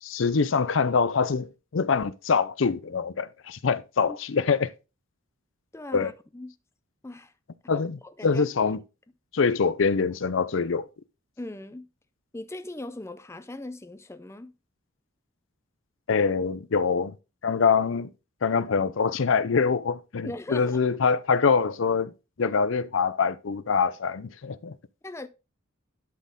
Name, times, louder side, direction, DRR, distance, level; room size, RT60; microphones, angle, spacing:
voice 1, 0.0-4.7 5.9-6.1 7.7-8.8 9.3-10.9 16.1-17.1 17.4-18.1 18.4-22.1 22.4-24.8, left 5 dB, 65° left, 0.5 m, -24 dB
voice 2, 5.7-6.5 7.0-7.3 7.7-8.4 11.4-11.9 12.3-14.5 20.2-20.8 25.0-25.3, left 2 dB, 15° left, 0.5 m, -39 dB
11.5 x 4.4 x 3.7 m
head